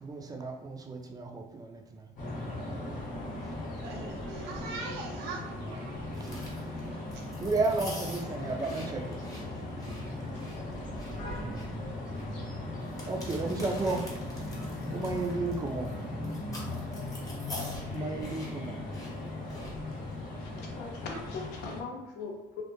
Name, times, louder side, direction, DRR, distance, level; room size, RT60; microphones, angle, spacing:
voice 1, 0.0-2.0 2.7-3.1 6.1-6.4 7.4-9.2 11.4-11.9 13.0-14.0 14.9-15.9 17.9-18.8, right 3 dB, 20° right, 2 dB, 0.4 m, -33 dB
sound 1, 2.2-21.8, left 2 dB, 50° left, 0.9 m, -38 dB
voice 2, 3.8-6.1, right 3 dB, 85° right, 0 dB, 0.4 m, -41 dB
sound 2, 6.1-20.1, left 1 dB, 20° left, 0.7 m, -45 dB
voice 3, 20.4-22.6, left 4 dB, 80° left, 1 dB, 0.6 m, -40 dB
2.1 x 2.1 x 2.9 m, 0.92 s
cardioid pair, 110°, 17 cm